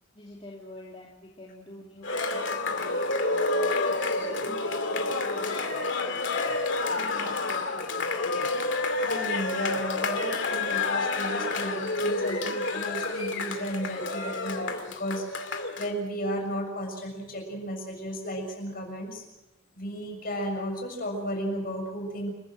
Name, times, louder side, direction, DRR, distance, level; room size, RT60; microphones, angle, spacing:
voice 1, 0.1-3.5 3.9-6.5 6.9-8.6, left 1 dB, 30° left, -3 dB, 3.1 m, -48 dB
Cheering, 2.0-15.9, left 3 dB, 60° left, 2.5 m, -29 dB
voice 2, 9.0-19.2 19.7-22.3, equal, 45° left, 3 dB, 6.7 m, -34 dB
29.0 x 15.5 x 7.7 m, 0.98 s
head